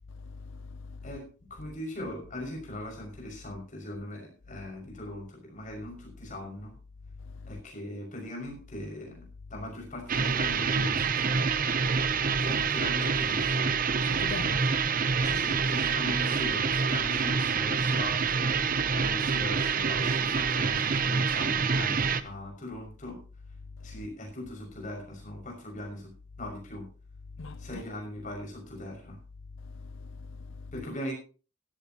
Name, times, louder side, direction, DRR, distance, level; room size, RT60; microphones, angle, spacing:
voice 1, 0.1-1.0 7.3-7.6 12.1-12.5 14.0-14.6 15.1-15.3 23.8-24.0 27.4-27.8 29.6-30.7, left 4 dB, 65° left, 0.6 m, -42 dB
voice 2, 1.0-6.7 7.5-11.7 12.4-13.8 14.4-14.6 15.2-23.2 23.8-26.1 26.4-26.9 27.6-29.2 30.7-31.1, left 1 dB, 35° left, 6.1 m, -40 dB
sound 1, 10.1-22.2, right 5 dB, 40° right, 0.7 m, -27 dB
16.0 x 14.0 x 3.0 m
head